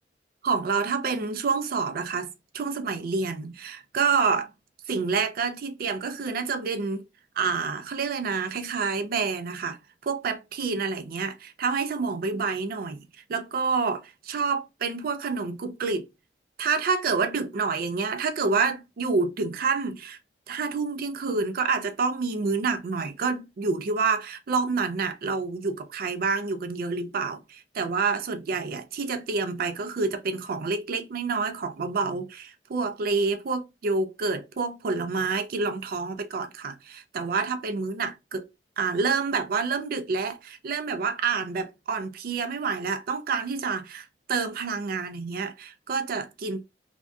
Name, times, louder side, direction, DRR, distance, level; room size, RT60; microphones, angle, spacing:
voice 1, 0.4-2.3 2.5-4.5 4.9-7.0 7.4-16.1 16.6-20.2 20.5-38.5 38.8-46.6, right 4 dB, 55° right, 0.4 m, -28 dB
2.6 x 2.2 x 2.3 m
head